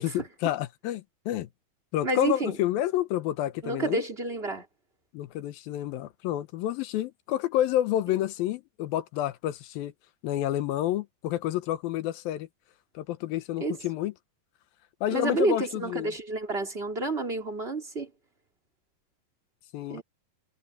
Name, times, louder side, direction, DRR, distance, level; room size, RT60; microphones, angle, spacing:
voice 1, 0.4-1.5 1.9-4.0 5.1-9.9 10.2-12.5 12.9-14.1 15.0-16.1 19.7-20.0, left 13 dB, 80° left, 2.7 m, -29 dB
voice 2, 2.0-2.6 3.6-4.7 13.6-13.8 15.1-18.1 19.9-20.0, right 2 dB, 15° right, 3.8 m, -29 dB
omnidirectional pair, 4.2 m